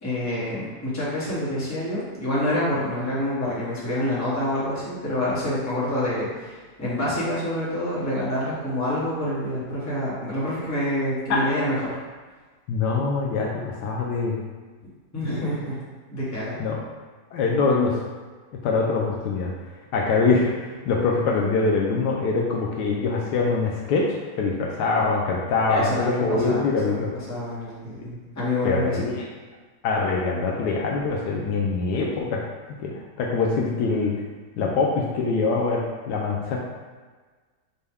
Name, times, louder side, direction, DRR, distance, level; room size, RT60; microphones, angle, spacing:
voice 1, 0.0-12.0 15.1-15.8 16.1-16.5 25.7-29.0, left 1 dB, 10° left, -9 dB, 1.0 m, -27 dB
voice 2, 12.7-14.4 16.6-16.8 17.3-18.0 18.6-19.5 19.9-27.1 28.6-29.3 29.8-32.4 32.8-34.1 34.6-36.6, left 4 dB, 80° left, -2 dB, 1.1 m, -24 dB
5.4 x 2.2 x 3.4 m, 1.4 s
omnidirectional pair, 1.8 m